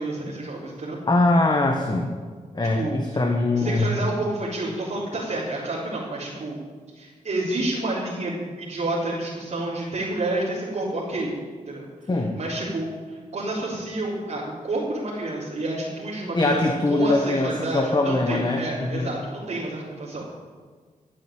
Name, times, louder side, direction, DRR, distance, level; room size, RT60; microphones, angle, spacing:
voice 1, 0.0-1.0 2.7-2.9 3.6-6.6 6.9-11.3 11.7-11.8 12.3-20.2, right 2 dB, 60° right, -9 dB, 3.9 m, -29 dB
voice 2, 1.1-2.1 2.5-3.9 12.1-12.4 16.3-19.1, left 2 dB, 30° left, 3 dB, 1.4 m, -22 dB
14.0 x 8.7 x 8.9 m, 1.5 s
wide cardioid pair, 85°, 14 cm